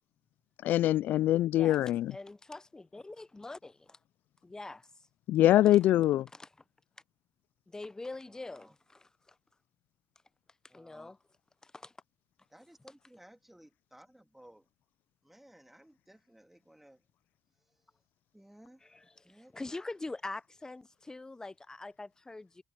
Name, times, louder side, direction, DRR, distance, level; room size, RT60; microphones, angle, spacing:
voice 1, 0.6-2.1 5.3-6.3, left 14 dB, 75° left, 0.4 m, -24 dB
voice 2, 2.1-4.0 4.4-4.9 6.3-6.5 7.7-9.4 10.7-11.2 11.6-11.9 18.8-22.6, left 2 dB, 20° left, 0.8 m, -44 dB
voice 3, 8.3-8.7 10.7-11.1 12.5-14.7 15.2-17.0 17.7-17.8 18.3-18.8 19.2-19.5, right 1 dB, 5° right, 3.0 m, -58 dB
supercardioid pair, 55°, 3 cm